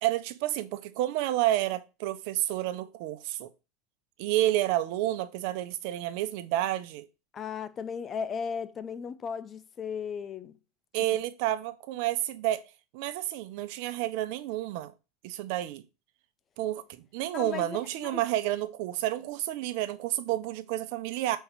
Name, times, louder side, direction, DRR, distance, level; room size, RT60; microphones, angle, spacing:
voice 1, 0.0-3.5 4.2-7.1 10.9-12.6 12.9-14.9 15.2-15.8 16.6-21.4, right 14 dB, 65° right, 1.0 m, -30 dB
voice 2, 7.3-10.6 17.3-18.2, left 6 dB, 30° left, 0.7 m, -36 dB
6.6 x 4.5 x 4.9 m
supercardioid pair, 115°, 0 cm